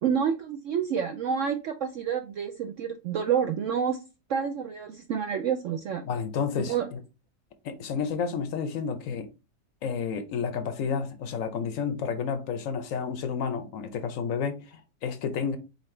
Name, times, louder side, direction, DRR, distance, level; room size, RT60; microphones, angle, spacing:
voice 1, 0.0-4.0 4.3-6.0 6.7-6.9, right 7 dB, 80° right, 0.6 m, -28 dB
voice 2, 6.0-7.0 7.6-9.3 9.8-15.6, left 6 dB, 65° left, 0.9 m, -31 dB
4.2 x 4.0 x 3.1 m
omnidirectional pair, 1.8 m